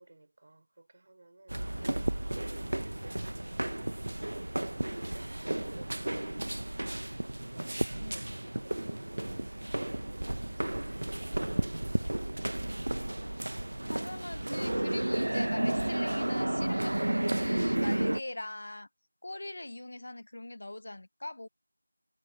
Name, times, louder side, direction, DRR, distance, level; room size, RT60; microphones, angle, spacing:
voice 1, 0.0-7.0 7.5-9.6 9.9-11.0 11.2-12.2, right 2 dB, 50° right, 5.5 m, -56 dB
sound 1, 1.5-18.2, right 1 dB, 85° right, 1.0 m, -32 dB
voice 2, 13.9-18.9 19.2-21.5, left 1 dB, 60° left, 1.0 m, -42 dB
figure-of-eight pair, 175°, 0 cm